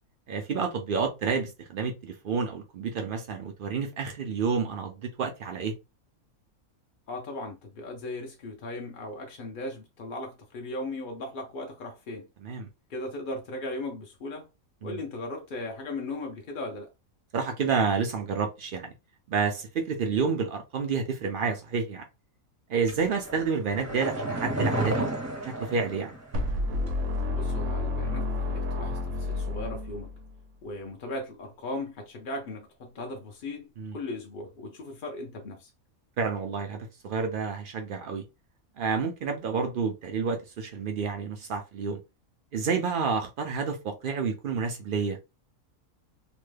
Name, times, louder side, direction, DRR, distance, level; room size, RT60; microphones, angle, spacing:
voice 1, 0.3-5.7 12.4-12.7 14.8-15.0 17.3-18.9 19.3-22.1 22.7-25.1 25.4-26.1 33.8-34.0 36.2-38.2 38.8-42.0 42.5-45.2, right 5 dB, 85° right, 0.4 m, -29 dB
voice 2, 7.1-12.3 12.9-14.5 14.8-16.9 27.3-30.1 30.6-35.7, left 2 dB, 60° left, 0.5 m, -37 dB
sound 1, 22.9-26.6 26.9-27.0, right 1 dB, 20° right, 0.5 m, -32 dB
sound 2, 26.3-30.3, left 2 dB, 65° right, 1.0 m, -30 dB
2.9 x 2.1 x 3.2 m
omnidirectional pair, 1.5 m